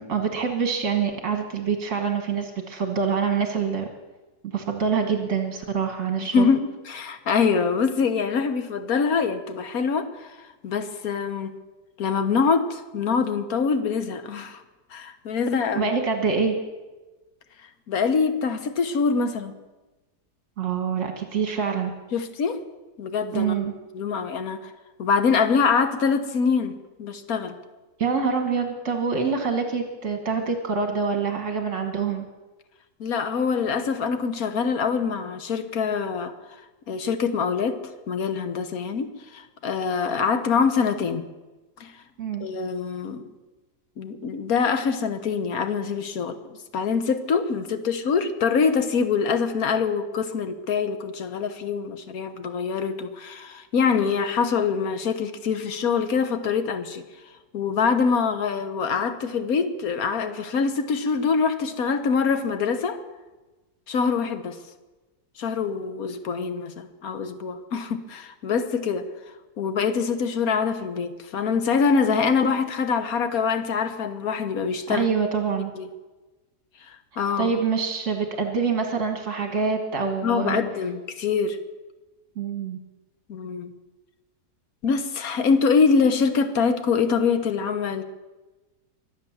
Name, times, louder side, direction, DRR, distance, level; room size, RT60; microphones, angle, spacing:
voice 1, 0.0-3.9 4.4-6.5 15.7-16.6 20.6-21.9 23.3-23.7 28.0-32.2 42.2-42.5 74.9-75.7 77.4-80.6 82.4-82.8, right 5 dB, 50° right, 5 dB, 1.7 m, -25 dB
voice 2, 6.2-10.4 10.6-11.5 12.0-14.6 14.9-15.9 17.9-19.5 22.1-22.6 23.0-23.6 23.9-24.7 25.0-27.6 33.0-36.3 36.9-37.8 38.1-41.3 41.8-41.9 42.4-43.2 44.0-46.4 46.7-57.0 57.5-63.0 63.9-64.6 65.4-69.1 69.6-75.1 75.7-75.9 76.9-77.5 80.2-81.6 83.3-83.7 84.8-88.0, left 5 dB, 65° left, 10 dB, 1.5 m, -24 dB
24.0 x 8.2 x 7.2 m, 1.2 s
omnidirectional pair, 1.7 m